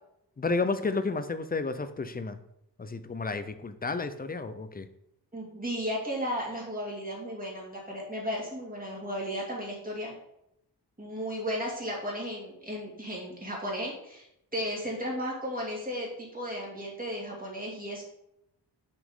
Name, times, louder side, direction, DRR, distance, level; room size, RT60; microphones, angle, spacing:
voice 1, 0.4-2.4 2.8-4.9, left 3 dB, 20° left, 11 dB, 0.5 m, -31 dB
voice 2, 5.3-10.1 11.0-14.3 14.5-18.0, equal, 20° right, -3 dB, 2.1 m, -34 dB
6.1 x 5.9 x 3.6 m, 0.80 s
wide cardioid pair, 125°, 44 cm